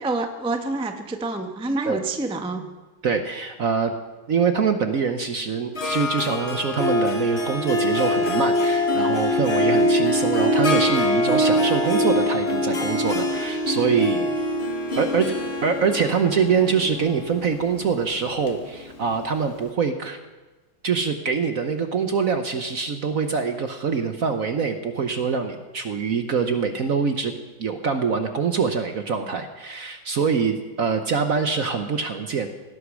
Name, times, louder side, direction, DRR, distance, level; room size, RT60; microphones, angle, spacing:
voice 1, 0.0-2.6, right 2 dB, 5° right, 5 dB, 0.6 m, -27 dB
voice 2, 3.0-3.9 4.3-14.3 15.0-15.3 15.6-20.2 20.8-27.3 27.6-32.5, right 5 dB, 55° right, 7 dB, 1.0 m, -24 dB
Harp, 5.7-19.3, left 1 dB, 35° left, 1.7 m, -23 dB
17.5 x 11.5 x 6.2 m, 1.2 s
omnidirectional pair, 2.2 m